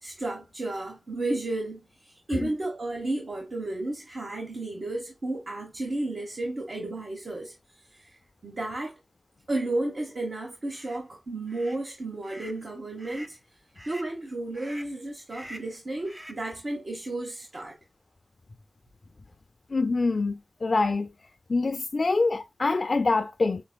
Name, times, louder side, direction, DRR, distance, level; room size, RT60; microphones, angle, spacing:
voice 1, 0.0-7.5 7.9-9.0 9.5-13.4 13.9-17.8, right 2 dB, 65° right, 1.1 m, -33 dB
sound 1, 10.7-11.0 11.5-11.8 12.2-12.6 13.0-13.4 13.7-14.1 14.5-15.0 15.3-15.8 16.0-16.5, equal, 20° right, 0.8 m, -46 dB
voice 2, 19.7-21.1 21.5-23.6, left 3 dB, 65° left, 0.3 m, -25 dB
5.9 x 3.6 x 2.2 m
cardioid pair, 45°, 0 cm